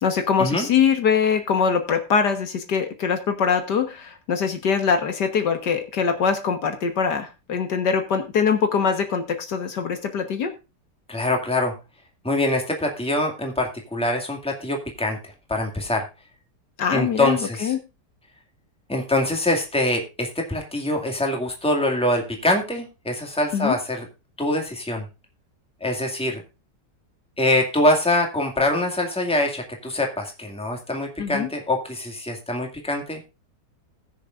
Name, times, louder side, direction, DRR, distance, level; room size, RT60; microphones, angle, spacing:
voice 1, 0.0-10.5 16.8-17.8 23.5-23.8 31.2-31.5, left 6 dB, 70° left, 7 dB, 1.9 m, -23 dB
voice 2, 11.1-11.7 12.2-15.2 15.5-16.0 16.9-17.7 18.9-24.1 24.4-25.0 25.8-26.4 27.4-33.2, left 1 dB, 5° left, 2 dB, 2.1 m, -24 dB
20.5 x 6.9 x 2.5 m, 0.28 s
omnidirectional pair, 1.9 m